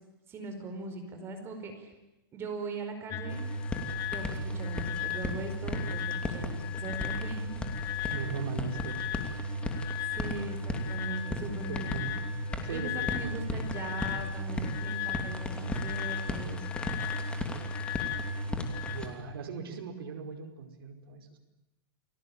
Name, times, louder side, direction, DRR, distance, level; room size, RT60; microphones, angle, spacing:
voice 1, 0.3-1.9 2.3-3.4 4.1-7.7 10.1-12.2 12.7-16.7, right 3 dB, 20° right, 5 dB, 4.9 m, -40 dB
sound 1, 3.1-19.0, left 2 dB, 25° left, 2.7 m, -35 dB
sound 2, 3.3-19.1, left 3 dB, 10° left, 2.8 m, -39 dB
voice 2, 8.1-9.1 11.7-12.2 12.6-13.3 18.8-21.4, right 5 dB, 75° right, 4 dB, 5.0 m, -39 dB
30.0 x 21.0 x 9.0 m, 0.97 s
supercardioid pair, 160°, 12 cm